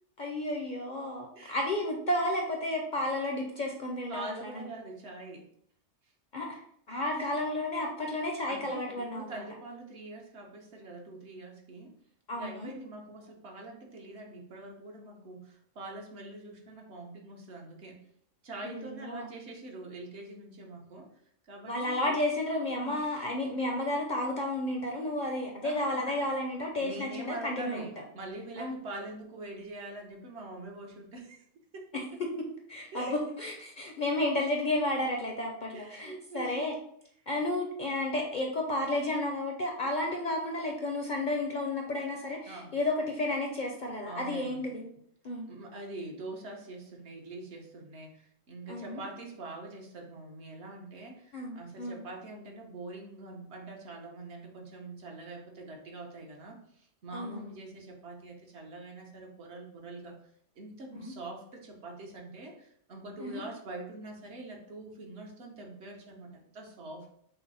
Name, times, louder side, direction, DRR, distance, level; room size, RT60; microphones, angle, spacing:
voice 1, 0.2-4.7 6.3-9.4 12.3-12.7 18.6-19.3 21.7-27.9 28.6-28.7 31.9-32.3 32.7-36.7 37.3-44.9 45.2-45.5 48.7-49.0 51.3-52.0 57.1-57.5 60.9-61.1 63.2-63.4, left 1 dB, 50° left, 1 dB, 0.6 m, -32 dB
voice 2, 4.1-5.4 7.1-7.3 8.5-11.9 12.3-18.0 18.4-21.1 21.5-22.1 22.8-23.2 25.2-25.3 25.6-26.0 26.8-27.9 28.1-31.4 31.7-31.9 32.9-33.4 35.7-36.6 42.5-42.7 44.0-44.6 45.5-60.2 60.6-67.1, right 2 dB, 60° right, 0 dB, 1.1 m, -44 dB
5.7 x 2.0 x 4.0 m, 0.67 s
omnidirectional pair, 1.3 m